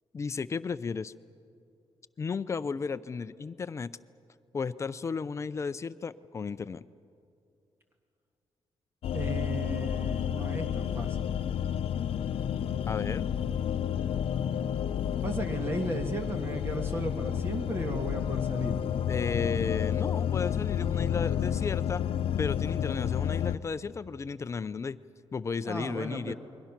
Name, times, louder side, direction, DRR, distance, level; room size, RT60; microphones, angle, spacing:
voice 1, 0.1-1.1 2.2-4.0 4.5-6.9 12.9-13.3 19.1-22.0 22.4-25.0 25.3-26.3, left 5 dB, 30° left, 15 dB, 0.5 m, -34 dB
sound 1, 9.0-23.6, left 9 dB, 75° left, 0.7 m, -30 dB
voice 2, 9.1-11.3 15.1-18.8 25.7-26.3, right 2 dB, 25° right, 5 dB, 1.4 m, -35 dB
29.0 x 22.5 x 6.0 m, 2.5 s
wide cardioid pair, 155°, 10 cm